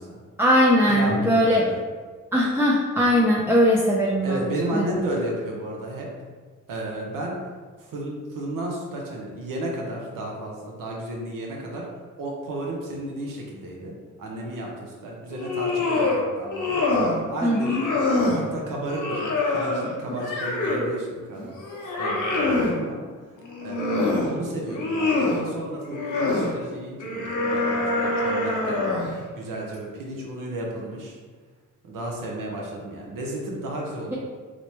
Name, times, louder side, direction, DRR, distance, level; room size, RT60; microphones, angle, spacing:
voice 1, 0.4-1.6 2.3-4.4 4.7-4.8 17.4-17.8, equal, 10° right, -5 dB, 0.4 m, -20 dB
voice 2, 0.9-1.8 4.2-6.1 6.7-7.4 7.8-11.8 12.2-21.6 22.0-23.0 23.6-23.9 24.3-28.8 29.3-31.2 31.8-34.1, right 1 dB, 80° right, -2 dB, 0.7 m, -33 dB
sound 1, 15.3-16.2 16.5-17.2 17.5-18.4 18.9-20.9 21.4-22.8 23.4-24.3 24.7-25.4 25.9-26.5 27.0-29.2, left 2 dB, 65° left, 0.8 m, -25 dB
3.0 x 2.1 x 4.1 m, 1.5 s
cardioid pair, 75°, 32 cm